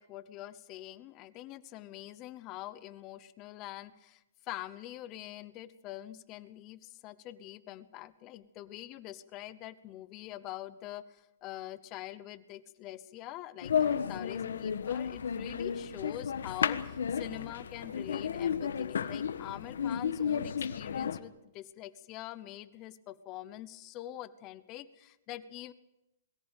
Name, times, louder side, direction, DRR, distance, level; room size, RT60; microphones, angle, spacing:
voice 1, 0.0-25.7, left 14 dB, 20° left, 15 dB, 0.8 m, -45 dB
sound 1, 13.6-21.2, left 7 dB, 85° left, 1.3 m, -33 dB
22.0 x 14.5 x 9.1 m, 0.90 s
hypercardioid pair, 175°, 0 cm